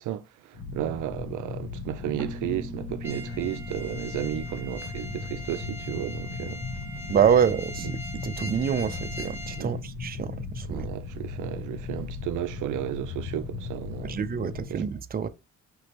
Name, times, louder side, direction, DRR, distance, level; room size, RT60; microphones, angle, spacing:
voice 1, 0.0-6.6 7.8-7.9 9.6-9.8 10.7-14.3 14.7-14.9, right 13 dB, 80° right, 0.6 m, -33 dB
sound 1, 0.5-14.7, left 4 dB, 85° left, 1.5 m, -37 dB
Keyboard (musical), 2.2-5.8, right 1 dB, 5° left, 1.5 m, -44 dB
sound 2, 3.0-9.6, left 1 dB, 10° right, 1.6 m, -41 dB
voice 2, 7.1-10.9 14.0-15.3, right 8 dB, 30° right, 0.6 m, -26 dB
5.2 x 3.2 x 3.0 m
cardioid pair, 90°, 30 cm